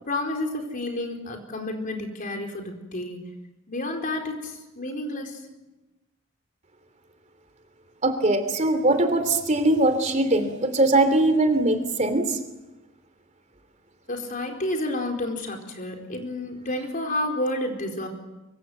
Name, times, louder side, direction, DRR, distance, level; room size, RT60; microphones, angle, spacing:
voice 1, 0.0-3.2 3.7-5.4 14.1-18.1, left 1 dB, 45° left, 2 dB, 4.4 m, -30 dB
voice 2, 8.0-12.4, right 2 dB, 35° right, 8 dB, 3.0 m, -21 dB
24.5 x 24.0 x 8.0 m, 1.0 s
head